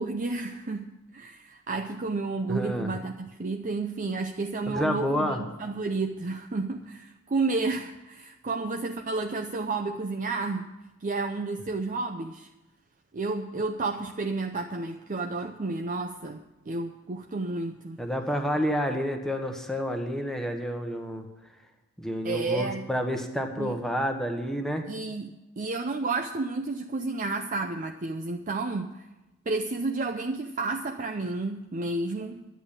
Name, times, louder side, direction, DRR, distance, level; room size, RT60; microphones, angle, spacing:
voice 1, 0.0-10.7 11.0-12.5 13.1-18.0 22.2-22.9 23.6-23.7 24.9-29.1 29.5-32.5, right 3 dB, 35° right, 4 dB, 0.6 m, -31 dB
voice 2, 2.5-2.9 4.7-5.4 18.0-21.3 22.0-24.9, equal, ahead, 4 dB, 1.1 m, -29 dB
11.0 x 8.2 x 8.6 m, 1.0 s
head